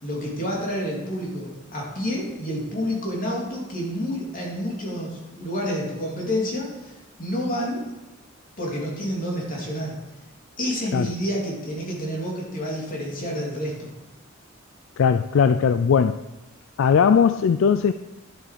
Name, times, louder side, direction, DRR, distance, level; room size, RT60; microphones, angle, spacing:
voice 1, 0.0-6.9 7.2-7.8 8.6-10.0 10.6-13.9, equal, 40° left, -3 dB, 3.1 m, -29 dB
voice 2, 15.0-16.2 16.8-17.9, left 6 dB, 70° left, 11 dB, 0.3 m, -19 dB
11.0 x 7.5 x 5.0 m, 1.1 s
head